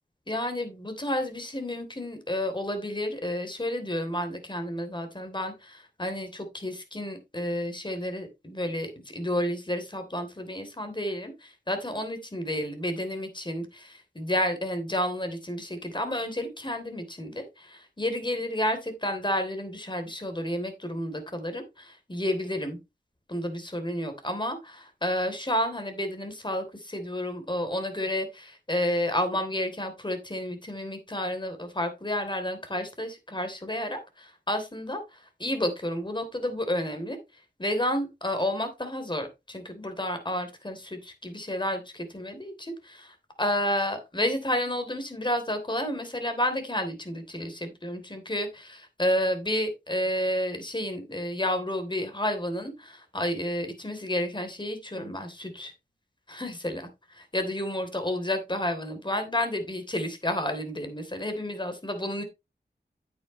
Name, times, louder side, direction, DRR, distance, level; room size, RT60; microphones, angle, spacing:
voice 1, 0.3-22.8 23.3-37.2 37.6-55.7 56.3-56.9 57.3-62.2, left 1 dB, 25° left, 7 dB, 3.2 m, -31 dB
9.3 x 8.6 x 3.1 m, 0.24 s
wide cardioid pair, 60°, 18 cm